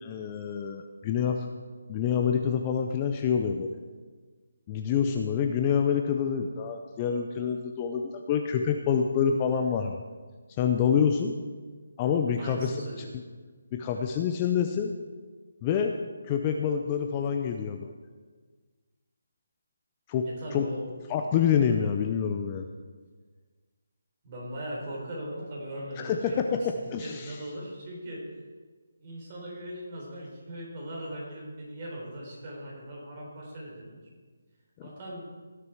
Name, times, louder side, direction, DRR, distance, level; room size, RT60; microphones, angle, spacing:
voice 1, 0.0-1.5 1.9-3.8 4.7-10.0 10.6-11.3 12.0-12.7 13.7-14.9 15.6-15.9 16.2-17.9 20.1-20.3 20.5-20.7 21.1-22.7 26.0-27.3 34.8-34.9, left 7 dB, 20° left, 4 dB, 0.5 m, -27 dB
voice 2, 12.4-13.1 20.2-20.9 24.2-28.3 29.0-34.0 34.8-35.2, equal, 30° right, -4 dB, 3.8 m, -39 dB
17.5 x 6.7 x 4.6 m, 1.5 s
hypercardioid pair, 165°, 0 cm